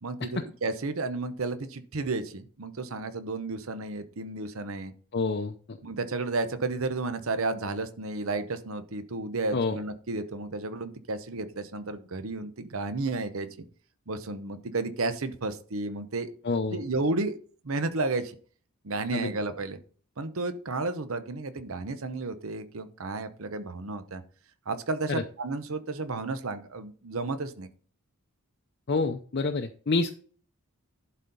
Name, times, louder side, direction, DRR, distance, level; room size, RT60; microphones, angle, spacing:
voice 1, 0.0-4.9 5.8-13.5 14.1-16.3 16.7-17.4 17.6-18.3 18.8-19.8 20.2-24.2 24.7-27.7, right 3 dB, 70° right, 10 dB, 0.8 m, -32 dB
voice 2, 5.1-5.8 9.5-9.8 16.4-16.8 19.1-19.3 25.1-25.2 28.9-30.1, left 3 dB, 50° left, 5 dB, 0.6 m, -28 dB
11.5 x 4.3 x 5.4 m, 0.43 s
head